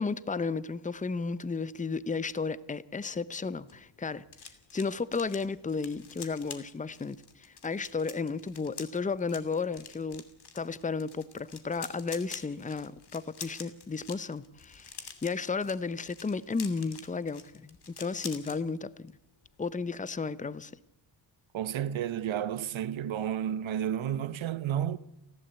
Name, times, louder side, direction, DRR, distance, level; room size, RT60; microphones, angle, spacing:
voice 1, 0.0-4.2 4.7-10.2 10.5-19.1 19.6-20.7, left 4 dB, 15° left, 0.7 m, -33 dB
sound 1, 3.4-18.6 18.9-19.2 19.4-19.7, left 6 dB, 55° left, 2.7 m, -47 dB
voice 2, 21.5-25.0, right 10 dB, 85° right, 1.0 m, -31 dB
30.0 x 12.5 x 8.2 m
cardioid pair, 90°, 46 cm